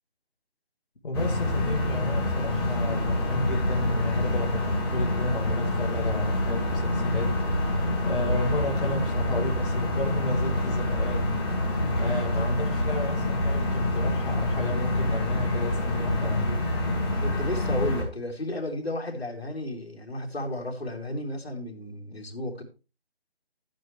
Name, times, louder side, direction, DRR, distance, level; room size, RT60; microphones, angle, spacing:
voice 1, 1.0-7.8 8.1-11.4 12.0-16.7, left 1 dB, 55° left, 1 dB, 1.7 m, -32 dB
sound 1, 1.1-18.0, left 1 dB, 25° left, 2.2 m, -26 dB
voice 2, 17.2-22.6, left 1 dB, 70° left, 1 dB, 3.0 m, -33 dB
12.5 x 9.2 x 3.2 m, 0.31 s
figure-of-eight pair, 170°, 32 cm